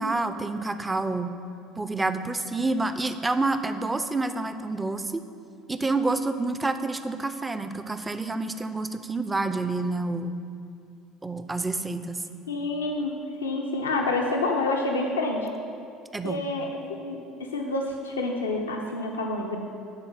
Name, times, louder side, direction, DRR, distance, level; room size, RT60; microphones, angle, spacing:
voice 1, 0.0-1.3 1.8-5.2 5.7-10.4 11.2-12.2 16.1-16.4, right 3 dB, 15° right, 10 dB, 0.6 m, -28 dB
voice 2, 12.5-15.5 16.2-19.6, left 2 dB, 90° left, 1 dB, 0.7 m, -28 dB
10.5 x 4.2 x 7.4 m, 2.4 s
hypercardioid pair, 65°, 0 cm